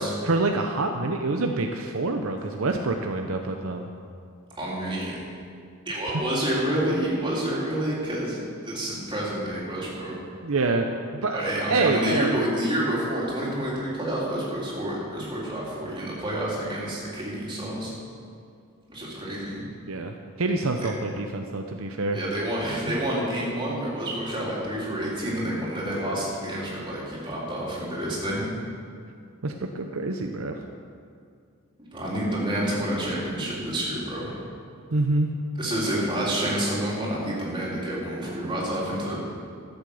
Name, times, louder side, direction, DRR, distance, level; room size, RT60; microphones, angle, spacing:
voice 1, 0.2-3.9 10.4-10.9 11.2-12.4 19.9-22.2 29.4-30.6 34.9-35.3, right 3 dB, 70° right, 4 dB, 0.7 m, -26 dB
voice 2, 4.5-5.2 5.9-10.2 11.3-17.9 18.9-19.6 22.1-28.5 31.9-34.3 35.6-39.2, right 1 dB, 25° right, -6 dB, 3.6 m, -28 dB
13.0 x 8.1 x 7.0 m, 2.4 s
head